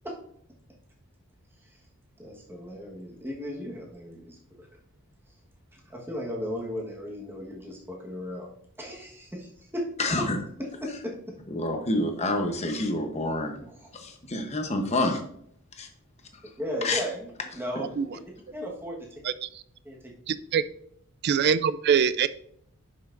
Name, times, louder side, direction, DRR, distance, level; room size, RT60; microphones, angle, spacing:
voice 1, 2.2-4.7 5.3-5.4 5.7-8.5 8.8-9.9 10.2-10.3 10.6-11.4 13.6-13.9 16.6-18.2 18.5-19.1 19.8-20.1, equal, 10° right, -2 dB, 1.3 m, -36 dB
voice 2, 10.0-10.4 11.6-13.6 13.9-15.2 15.8-15.9 16.8-17.0, left 2 dB, 30° left, 5 dB, 0.9 m, -27 dB
voice 3, 20.3-20.6 21.2-22.3, right 7 dB, 50° right, 15 dB, 0.3 m, -23 dB
10.5 x 5.6 x 2.5 m, 0.68 s
head